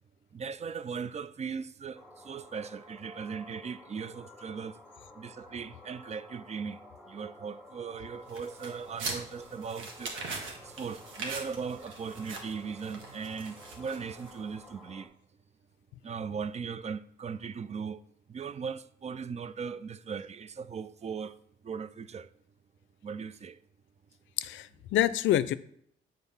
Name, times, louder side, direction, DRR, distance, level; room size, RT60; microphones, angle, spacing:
voice 1, 0.3-4.8 5.2-10.2 10.6-15.1 16.0-18.0 18.3-22.3 23.0-23.6, right 6 dB, 35° right, 0.4 m, -38 dB
sound 1, 1.9-15.1, left 1 dB, 5° right, 1.3 m, -52 dB
sound 2, 8.3-14.5, right 4 dB, 80° right, 1.6 m, -42 dB
voice 2, 24.4-25.5, left 12 dB, 75° left, 0.4 m, -27 dB
7.1 x 3.8 x 5.5 m
cardioid pair, 90°, 20 cm